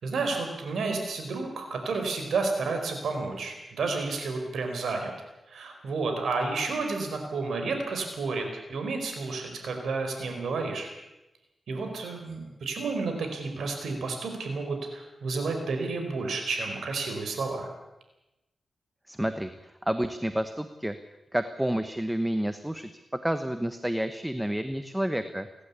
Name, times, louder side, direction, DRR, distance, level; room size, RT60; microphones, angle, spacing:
voice 1, 0.0-5.1 5.5-10.9 11.7-17.7, right 3 dB, 85° right, 4 dB, 4.4 m, -31 dB
voice 2, 19.1-20.9 21.3-22.9 23.2-25.5, right 1 dB, 5° right, 10 dB, 1.1 m, -29 dB
29.0 x 12.0 x 8.4 m, 0.98 s
cardioid pair, 80°, 0 cm